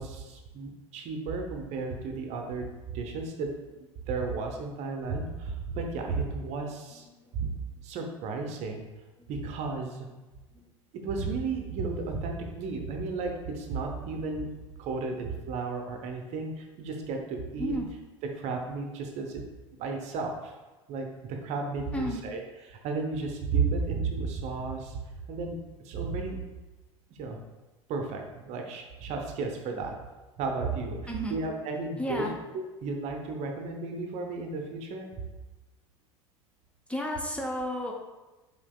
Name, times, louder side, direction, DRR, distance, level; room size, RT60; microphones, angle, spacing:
voice 1, 0.0-2.7 2.9-3.5 3.8-7.0 7.3-7.5 7.8-8.9 9.3-10.1 11.0-14.5 14.8-17.7 18.4-19.4 19.8-20.6 20.9-22.4 22.7-25.0 25.3-25.6 25.8-26.4 27.2-27.4 27.9-30.0 30.4-32.3 32.5-35.1, right 4 dB, 45° right, 3 dB, 0.7 m, -33 dB
voice 2, 6.9-7.4 9.2-9.3 10.5-10.7 17.6-17.9 21.9-22.2 31.1-31.4 32.0-32.4 36.9-37.9, equal, 10° left, 1 dB, 0.6 m, -33 dB
5.9 x 3.8 x 2.3 m, 1.2 s
figure-of-eight pair, 75°, 16 cm